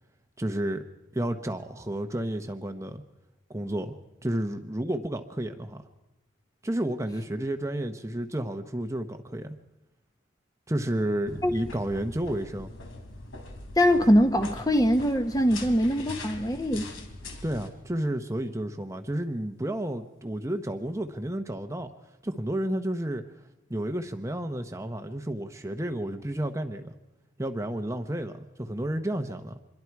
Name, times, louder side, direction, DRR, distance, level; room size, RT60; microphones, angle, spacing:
voice 1, 0.4-0.8 1.1-3.0 3.5-3.9 4.2-5.8 6.6-9.6 10.7-12.7 17.4-21.9 22.2-23.2 23.7-26.9 27.4-29.5, right 1 dB, 15° right, 1.0 m, -31 dB
sound 1, 11.3-17.7, left 2 dB, 80° left, 3.5 m, -41 dB
voice 2, 13.8-16.9, equal, 20° left, 1.3 m, -22 dB
26.5 x 22.5 x 4.8 m
head